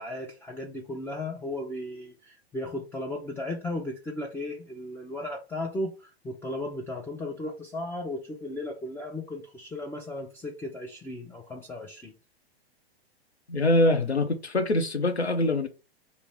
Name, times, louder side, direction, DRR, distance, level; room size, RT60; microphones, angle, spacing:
voice 1, 0.0-5.9 6.2-12.1, left 1 dB, 5° left, 0.6 m, -35 dB
voice 2, 13.5-15.7, left 2 dB, 90° left, 0.8 m, -24 dB
4.0 x 2.7 x 4.6 m
figure-of-eight pair, 105°, 32 cm